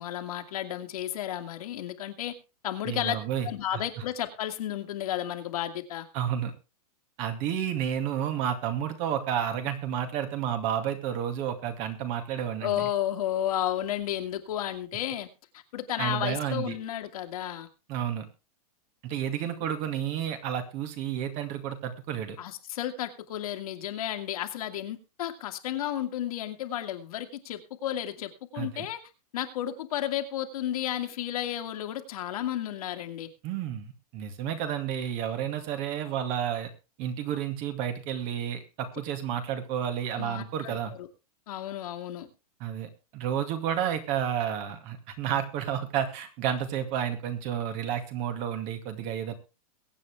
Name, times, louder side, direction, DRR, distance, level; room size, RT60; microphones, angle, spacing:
voice 1, 0.0-2.3 2.6-3.2 3.4-6.1 12.6-15.3 15.5-17.7 22.4-29.0 29.3-33.3 40.2-41.1 41.5-42.3, left 11 dB, 65° left, 6 dB, 2.2 m, -32 dB
voice 2, 2.9-3.5 3.7-3.8 6.1-6.5 7.2-12.9 16.0-16.8 17.9-18.3 19.0-22.4 28.5-28.9 33.4-36.7 37.0-40.9 42.6-49.3, right 9 dB, 35° right, 7 dB, 2.2 m, -31 dB
22.5 x 8.5 x 3.5 m, 0.30 s
supercardioid pair, 160°, 20 cm